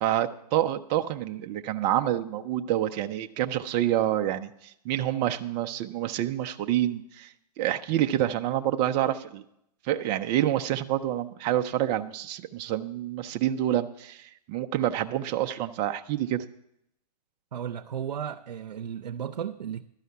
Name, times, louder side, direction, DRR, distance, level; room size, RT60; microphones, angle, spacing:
voice 1, 0.0-4.5 4.8-9.4 9.8-16.5, right 12 dB, 20° right, 0.3 m, -27 dB
voice 2, 17.5-19.8, right 8 dB, 80° right, 0.6 m, -34 dB
12.0 x 5.6 x 8.0 m
hypercardioid pair, 140°, 21 cm